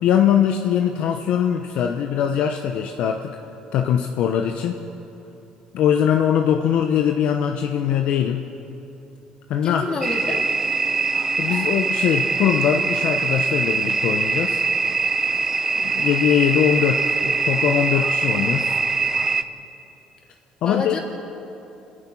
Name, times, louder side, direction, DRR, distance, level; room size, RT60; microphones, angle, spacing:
voice 1, 0.0-3.3 3.7-4.8 5.7-8.4 9.5-9.8 11.4-14.6 15.8-18.8 20.6-21.0, left 9 dB, 70° left, 4 dB, 1.0 m, -21 dB
voice 2, 9.6-10.5 20.6-21.0, left 4 dB, 40° left, 1 dB, 3.0 m, -28 dB
sound 1, 10.0-19.4, right 4 dB, 20° right, 0.8 m, -23 dB
29.0 x 10.5 x 8.6 m, 2.9 s
cardioid pair, 110°, 2 cm